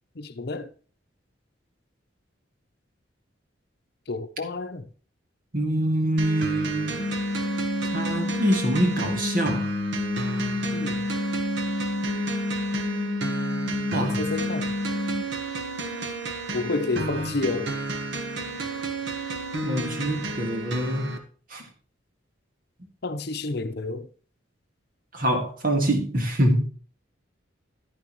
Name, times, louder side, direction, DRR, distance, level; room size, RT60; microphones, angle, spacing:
voice 1, 0.2-0.7 4.1-4.9 10.7-11.0 13.9-14.7 16.5-17.7 23.0-24.1, left 3 dB, 55° left, 0.8 m, -30 dB
voice 2, 5.5-7.0 7.8-9.7 13.9-14.2 17.0-17.4 19.6-21.1 21.5-21.6 25.1-26.7, right 1 dB, 50° right, 1.9 m, -25 dB
sound 1, 6.2-21.2, right 3 dB, 65° right, 1.4 m, -32 dB
sound 2, 7.0-15.2, left 2 dB, 25° left, 0.5 m, -29 dB
10.5 x 10.5 x 3.1 m
head